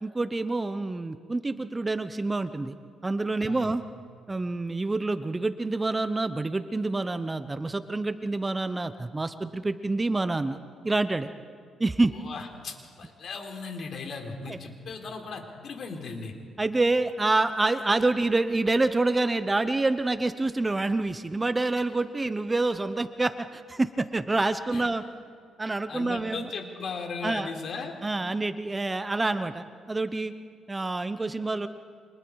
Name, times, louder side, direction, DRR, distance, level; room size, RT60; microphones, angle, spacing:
voice 1, 0.0-2.7 3.0-3.8 4.3-10.6 10.8-11.3 11.8-12.1 14.5-14.6 16.6-25.0 25.6-26.5 27.2-27.5 28.0-30.3 30.7-31.7, right 2 dB, 20° right, 11 dB, 0.9 m, -27 dB
voice 2, 12.1-16.3 24.7-24.9 25.9-27.9, left 4 dB, 60° left, 3 dB, 3.7 m, -37 dB
29.5 x 25.5 x 4.8 m, 2.1 s
cardioid pair, 90°, 0 cm